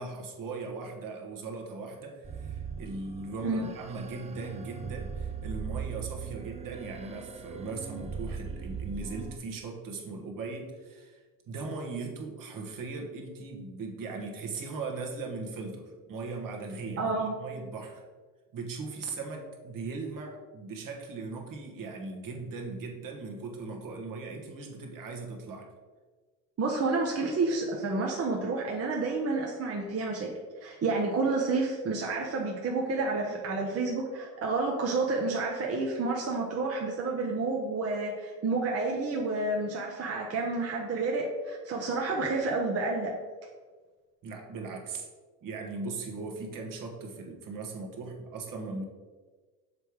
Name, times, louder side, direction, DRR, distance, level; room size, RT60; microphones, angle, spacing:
voice 1, 0.0-18.0 18.5-25.7 44.2-45.1 45.4-48.8, right 3 dB, 55° right, 1 dB, 1.4 m, -39 dB
sound 1, 2.2-9.4, right 6 dB, 15° right, 0.4 m, -39 dB
voice 2, 17.0-17.3 26.6-30.3 30.6-43.1, right 3 dB, 35° right, -1 dB, 1.0 m, -30 dB
6.8 x 3.4 x 4.7 m, 1.4 s
supercardioid pair, 80°, 40 cm